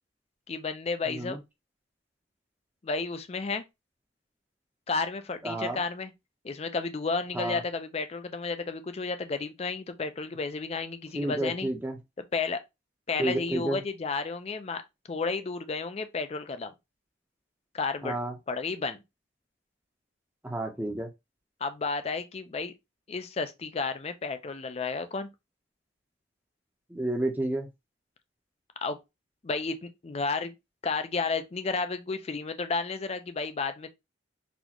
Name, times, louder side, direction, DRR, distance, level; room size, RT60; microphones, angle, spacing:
voice 1, 0.5-1.4 2.8-3.6 4.9-6.1 6.4-11.7 12.2-12.6 13.1-14.8 15.1-16.7 17.7-18.2 18.5-19.0 21.6-22.7 23.1-25.3 28.8-29.0 29.4-30.5 30.8-33.9, left 4 dB, 35° left, 0.4 m, -32 dB
voice 2, 1.1-1.4 5.4-5.8 7.3-7.6 11.1-12.0 13.2-13.8 18.0-18.3 20.4-21.1 26.9-27.7, right 1 dB, 10° right, 0.6 m, -30 dB
4.0 x 2.4 x 2.9 m
head